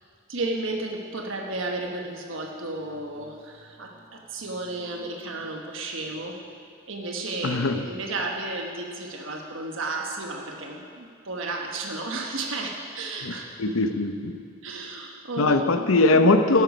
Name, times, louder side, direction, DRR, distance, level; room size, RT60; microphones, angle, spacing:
voice 1, 0.3-6.4 6.9-13.5 14.6-16.0, right 2 dB, 75° right, 1 dB, 1.2 m, -33 dB
voice 2, 7.4-7.8 13.2-13.3 13.6-14.4 15.4-16.6, left 2 dB, 85° left, 8 dB, 0.9 m, -21 dB
13.0 x 12.0 x 5.4 m, 2.2 s
head